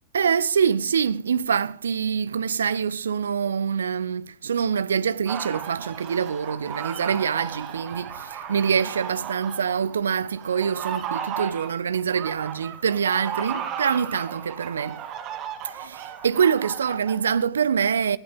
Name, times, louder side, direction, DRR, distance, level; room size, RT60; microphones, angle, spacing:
voice 1, 0.1-15.0 15.6-18.2, right 7 dB, 70° right, 0.7 m, -25 dB
sound 1, 5.3-17.3, right 8 dB, 35° right, 2.7 m, -35 dB
19.0 x 17.5 x 3.6 m
figure-of-eight pair, 90°, 0 cm